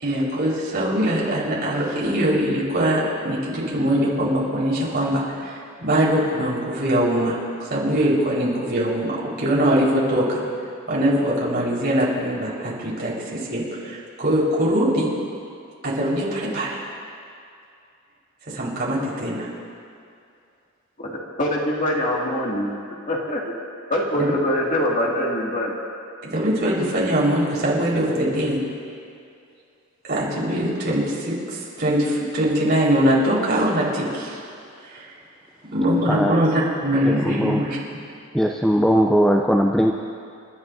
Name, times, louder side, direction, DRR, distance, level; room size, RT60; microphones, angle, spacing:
voice 1, 0.0-10.4 10.9-15.1 15.8-16.8 18.5-19.5 24.1-24.3 26.3-28.6 30.1-34.4 34.9-35.1 35.7-37.8, equal, 50° right, -6 dB, 4.6 m, -22 dB
voice 2, 21.0-22.7 23.1-23.4 23.9-25.7, left 1 dB, 35° left, -4 dB, 2.3 m, -24 dB
voice 3, 37.0-37.6 38.3-39.9, equal, ahead, 1 dB, 0.5 m, -19 dB
29.5 x 13.0 x 2.7 m, 2.5 s
head